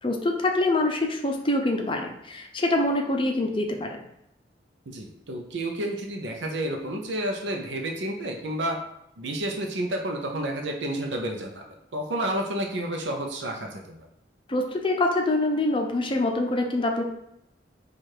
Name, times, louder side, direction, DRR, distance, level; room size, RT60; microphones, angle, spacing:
voice 1, 0.0-4.0 14.5-17.0, left 2 dB, 30° left, 3 dB, 0.5 m, -25 dB
voice 2, 4.9-8.8 9.2-11.7 11.9-14.1, right 1 dB, 75° right, 2 dB, 0.6 m, -30 dB
4.7 x 2.4 x 4.5 m, 0.82 s
head